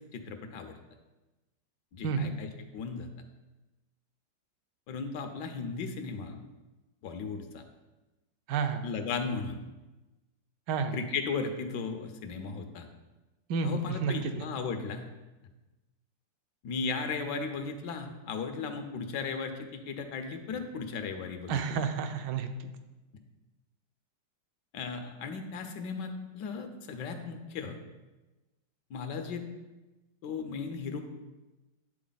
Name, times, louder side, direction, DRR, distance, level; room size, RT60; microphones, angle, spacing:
voice 1, 0.1-0.8 1.9-3.1 4.9-6.4 7.0-7.6 8.8-9.6 10.9-12.9 13.6-15.1 16.6-21.5 24.7-27.8 28.9-29.5 30.2-31.0, left 5 dB, 75° left, 6 dB, 1.3 m, -36 dB
voice 2, 2.0-2.3 8.5-8.9 10.7-11.0 13.5-14.5 21.5-22.7, right 5 dB, 80° right, 8 dB, 1.3 m, -30 dB
9.3 x 4.0 x 3.9 m, 1.1 s
omnidirectional pair, 1.9 m